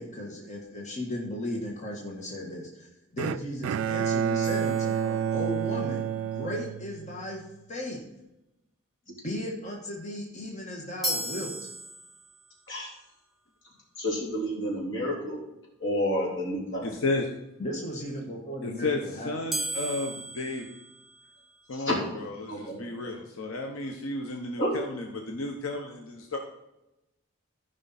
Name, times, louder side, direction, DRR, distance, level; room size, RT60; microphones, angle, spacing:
voice 1, 0.0-2.9 3.1-8.0 9.1-11.7 17.6-19.5, left 1 dB, 35° left, -1 dB, 1.5 m, -36 dB
Bowed string instrument, 3.2-7.4, right 8 dB, 70° right, 0.3 m, -29 dB
sound 1, 4.4-5.7 11.0-12.5 19.5-21.6, right 1 dB, ahead, 1.2 m, -36 dB
voice 2, 14.0-15.4 15.8-16.8 21.7-21.9 22.5-23.1 24.6-24.7, equal, 60° left, -3 dB, 3.5 m, -30 dB
voice 3, 16.8-17.3 18.6-20.7 21.7-26.4, left 2 dB, 90° left, 2 dB, 1.0 m, -33 dB
15.0 x 5.3 x 4.2 m, 0.93 s
head